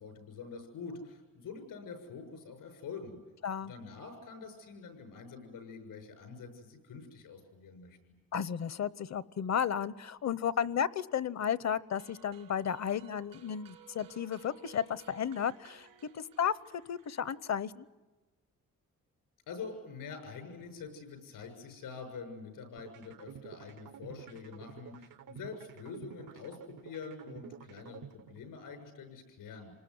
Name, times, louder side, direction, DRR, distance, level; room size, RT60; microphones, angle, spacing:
voice 1, 0.0-3.2 3.6-8.0 19.5-29.7, left 5 dB, 85° left, 6 dB, 7.0 m, -46 dB
voice 2, 8.3-15.9 16.1-17.9, left 8 dB, 55° left, 18 dB, 0.9 m, -33 dB
sound 1, 12.0-17.6, right 10 dB, 90° right, 3.9 m, -58 dB
sound 2, 22.8-28.8, right 9 dB, 70° right, 0.9 m, -50 dB
27.5 x 20.0 x 9.6 m, 1.2 s
cardioid pair, 70°, 33 cm